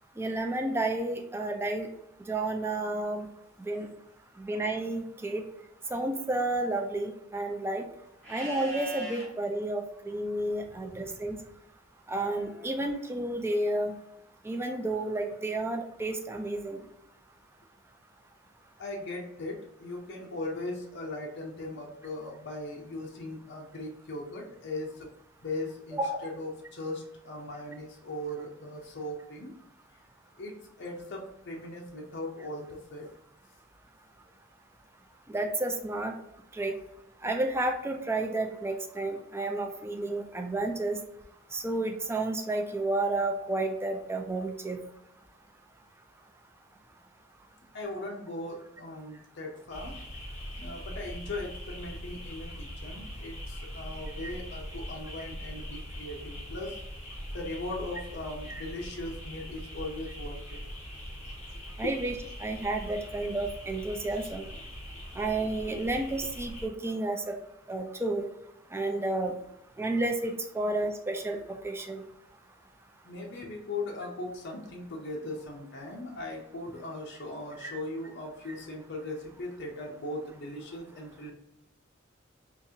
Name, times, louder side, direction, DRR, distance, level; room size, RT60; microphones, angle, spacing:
voice 1, 0.2-1.9 2.3-3.3 3.6-3.9 4.4-5.4 5.9-7.9 8.3-11.4 12.1-13.9 14.4-16.8 25.9-26.3 35.3-36.1 36.5-36.7 37.2-41.0 41.5-44.8 54.2-54.3 58.5-58.6 61.8-62.1 62.4-64.5 65.2-67.4 67.7-68.3 68.7-69.3 69.8-72.0 77.6-77.8 78.5-78.6, right 2 dB, 10° right, 3 dB, 0.4 m, -31 dB
Livestock farm animals working animals, 8.2-9.3 12.1-13.1, right 1 dB, 10° left, 1.4 m, -41 dB
voice 2, 18.8-25.1 25.4-29.5 30.4-33.1 47.7-49.9 50.6-56.8 57.3-60.6 66.2-66.3 73.0-81.3, left 2 dB, 60° left, -1 dB, 0.7 m, -39 dB
sound 1, 49.7-66.7, equal, 35° left, 1.3 m, -42 dB
4.0 x 2.4 x 2.8 m, 0.83 s
head